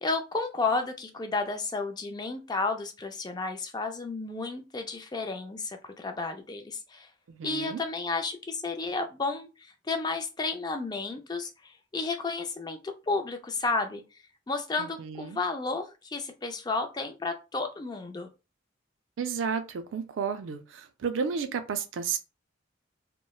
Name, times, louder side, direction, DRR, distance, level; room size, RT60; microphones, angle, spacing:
voice 1, 0.0-7.1 7.4-9.5 9.9-14.0 14.5-18.3, left 3 dB, 20° left, 0.4 m, -32 dB
voice 2, 7.3-7.8 14.8-15.4 19.2-22.2, right 6 dB, 85° right, 0.4 m, -32 dB
3.0 x 2.1 x 2.2 m
head